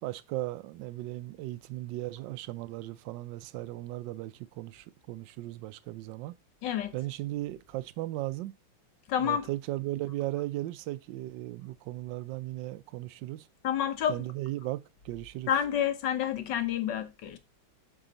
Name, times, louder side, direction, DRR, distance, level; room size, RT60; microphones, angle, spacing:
voice 1, 0.0-6.3 6.9-8.6 9.2-13.5 14.1-15.5, right 17 dB, 80° right, 1.2 m, -36 dB
voice 2, 6.6-6.9 9.1-9.5 13.6-14.2 15.5-17.4, left 9 dB, 70° left, 1.6 m, -29 dB
7.5 x 4.9 x 4.0 m
omnidirectional pair, 2.0 m